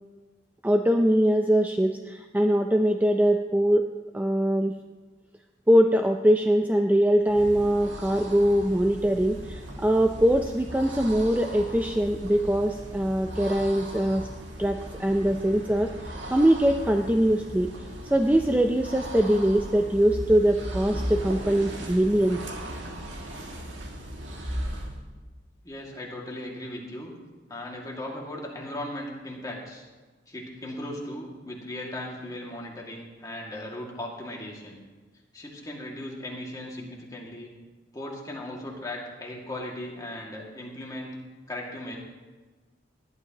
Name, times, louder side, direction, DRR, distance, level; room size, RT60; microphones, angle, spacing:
voice 1, 0.6-3.8 4.1-4.7 5.7-14.3 14.6-17.7 18.1-22.4, right 1 dB, 10° right, 4 dB, 0.4 m, -22 dB
sound 1, 7.2-25.0, right 1 dB, 75° right, 2.0 m, -37 dB
voice 2, 25.6-27.1 27.5-29.8 30.3-34.8 35.3-37.5 37.9-41.1 41.5-42.0, left 1 dB, 20° left, -2 dB, 2.1 m, -37 dB
19.5 x 12.0 x 2.9 m, 1.3 s
head